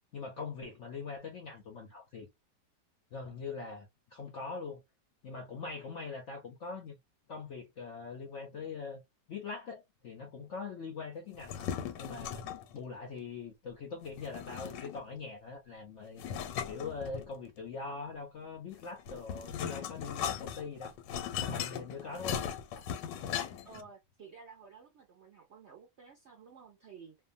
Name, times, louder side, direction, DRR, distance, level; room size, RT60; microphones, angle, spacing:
voice 1, 0.1-2.3 3.1-4.8 5.2-7.0 7.3-9.0 9.3-11.7 12.0-12.5 12.7-16.2 16.7-20.9 21.4-22.4, left 4 dB, 65° left, 0.7 m, -42 dB
sound 1, 11.3-12.7 14.2-15.2 16.2-17.6 18.7-23.8, left 9 dB, 85° left, 1.3 m, -38 dB
voice 2, 23.6-27.2, right 5 dB, 65° right, 0.6 m, -53 dB
2.8 x 2.2 x 2.6 m
omnidirectional pair, 1.9 m